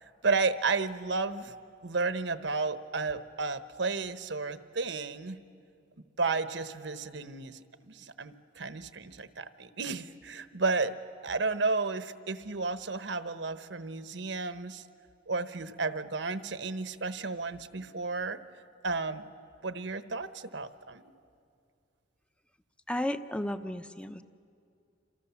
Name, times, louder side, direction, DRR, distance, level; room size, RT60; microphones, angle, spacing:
voice 1, 0.2-1.5 1.8-5.4 6.2-11.0 11.2-14.8 15.3-18.4 18.8-19.3 19.6-21.0, right 4 dB, 70° right, 11 dB, 1.1 m, -32 dB
voice 2, 22.9-24.2, left 1 dB, 5° left, 10 dB, 0.7 m, -33 dB
28.0 x 28.0 x 7.1 m, 2.4 s
head